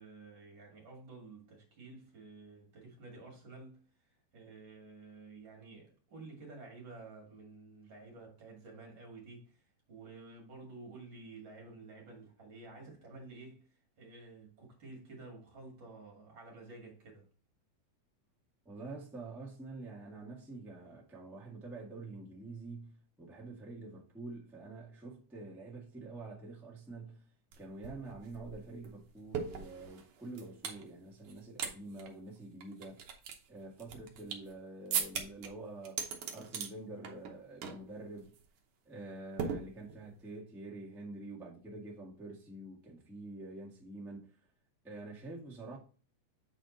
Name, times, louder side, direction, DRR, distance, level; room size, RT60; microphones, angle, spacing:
voice 1, 0.0-3.9 4.3-9.6 9.9-13.7 14.0-17.3, right 3 dB, 40° right, 2.6 m, -51 dB
voice 2, 18.6-27.3 27.6-33.1 33.5-36.0 36.3-38.3 38.8-44.3 44.8-45.8, right 2 dB, ahead, 0.4 m, -47 dB
sound 1, 27.5-27.6 27.8-30.8 31.2-31.7 32.0-32.1 32.6-34.5 34.9-35.5 35.8-36.7 37.0-37.3 37.6-37.9 38.2-38.4 39.4-40.1, right 7 dB, 65° right, 1.5 m, -39 dB
7.4 x 4.2 x 4.0 m
omnidirectional pair, 3.7 m